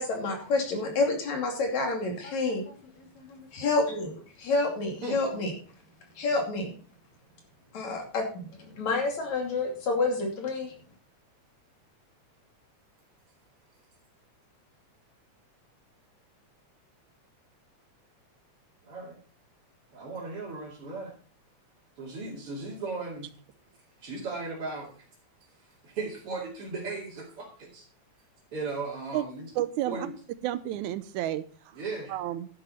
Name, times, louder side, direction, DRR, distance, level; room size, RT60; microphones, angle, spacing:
voice 1, 0.0-5.5 6.2-6.7 7.7-10.7, left 3 dB, 70° left, 2 dB, 4.0 m, -29 dB
voice 2, 18.8-19.2 19.9-21.1 22.0-23.3 24.0-25.0 25.6-27.8 28.5-29.5 29.9-30.1 31.8-32.1, right 3 dB, 50° right, -6 dB, 3.5 m, -36 dB
voice 3, 29.6-30.1 30.4-31.8 32.1-32.5, right 13 dB, 85° right, 13 dB, 2.1 m, -31 dB
11.5 x 10.5 x 4.3 m, 0.40 s
omnidirectional pair, 3.4 m